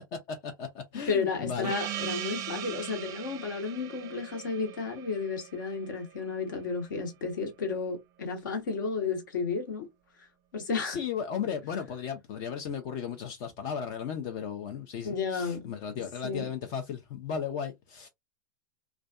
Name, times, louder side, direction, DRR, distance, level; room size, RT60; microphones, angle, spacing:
voice 1, 0.3-1.8 10.8-18.1, left 7 dB, 50° left, 0.5 m, -35 dB
voice 2, 1.1-9.9 10.5-11.0 15.0-15.7 16.2-16.5, left 5 dB, 70° left, 1.1 m, -32 dB
Gong, 1.6-6.7, right 11 dB, 35° right, 0.5 m, -40 dB
2.4 x 2.3 x 2.3 m
hypercardioid pair, 100°, 11 cm